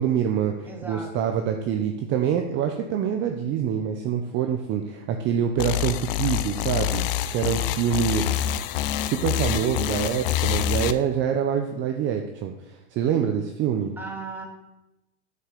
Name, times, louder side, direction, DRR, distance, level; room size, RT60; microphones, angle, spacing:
voice 1, 0.0-8.3 9.0-13.9, right 8 dB, 35° right, 5 dB, 0.9 m, -26 dB
voice 2, 0.7-1.3 14.0-14.5, right 3 dB, 5° right, 0 dB, 2.3 m, -37 dB
sound 1, 5.6-10.9, left 12 dB, 55° left, 0.7 m, -26 dB
9.4 x 6.0 x 6.8 m, 0.95 s
hypercardioid pair, 125°, 34 cm